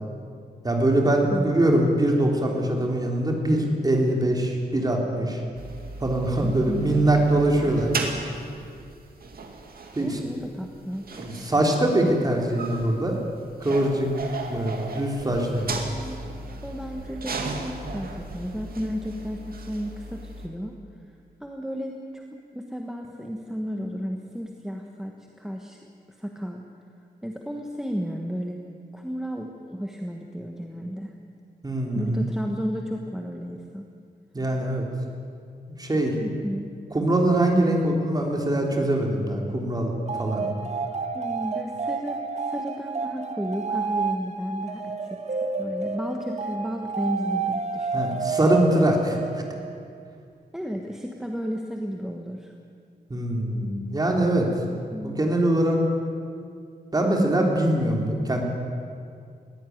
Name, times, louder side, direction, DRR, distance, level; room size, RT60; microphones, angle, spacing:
voice 1, 0.6-5.4 6.0-7.9 10.0-10.2 11.1-13.2 13.6-14.1 14.5-15.9 31.6-32.3 34.3-34.9 35.8-36.2 36.9-39.9 40.2-40.5 47.9-49.2 53.1-54.5 55.0-55.8 56.9-58.4, right 1 dB, 25° right, 1 dB, 3.4 m, -23 dB
voice 2, 1.3-1.9 6.4-7.0 10.0-11.1 15.7-16.3 16.6-20.8 21.4-25.8 26.2-26.6 27.2-28.6 28.9-31.1 31.9-33.8 36.2-36.7 41.1-48.0 50.5-52.5 54.7-55.2, equal, 5° right, 1 dB, 1.4 m, -33 dB
sound 1, 5.5-20.5, right 3 dB, 60° right, 2.4 m, -36 dB
sound 2, 40.1-49.8, right 5 dB, 40° right, 1.5 m, -30 dB
21.0 x 16.5 x 9.5 m, 2.3 s
wide cardioid pair, 160°, 17 cm